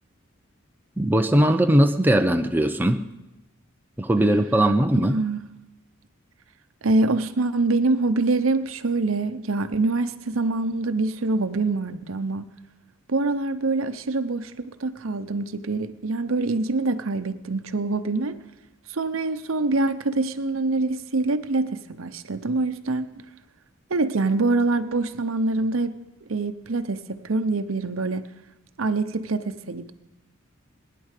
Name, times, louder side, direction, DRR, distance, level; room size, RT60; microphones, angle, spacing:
voice 1, 1.0-3.0 4.0-5.2, right 1 dB, 10° right, 0.6 m, -20 dB
voice 2, 5.0-5.4 6.8-12.5 13.1-18.4 18.9-23.2 23.9-25.9 26.3-28.2 28.8-29.9, right 3 dB, 80° right, 0.8 m, -25 dB
19.5 x 10.0 x 6.6 m
head